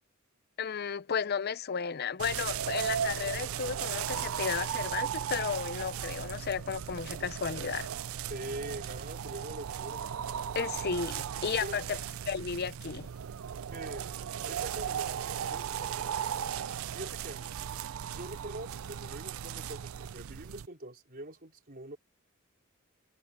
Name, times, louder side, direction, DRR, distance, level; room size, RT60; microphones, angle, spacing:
voice 1, 0.6-7.9 10.5-12.0 12.3-13.1, left 6 dB, 45° left, 0.6 m, -33 dB
sound 1, 2.2-20.7, right 8 dB, 75° right, 0.4 m, -36 dB
voice 2, 8.3-10.1 11.6-11.8 13.7-16.2 16.9-17.5 18.1-22.0, right 1 dB, 45° right, 4.2 m, -44 dB
head